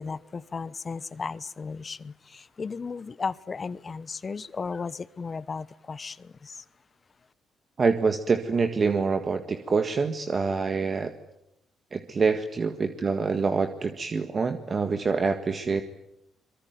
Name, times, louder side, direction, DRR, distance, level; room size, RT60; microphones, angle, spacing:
voice 1, 0.0-6.6, left 5 dB, 35° left, 18 dB, 0.9 m, -35 dB
voice 2, 7.8-11.1 11.9-15.8, right 4 dB, 40° right, 8 dB, 1.7 m, -26 dB
24.5 x 23.0 x 9.4 m, 0.80 s
cardioid pair, 90°, 0 cm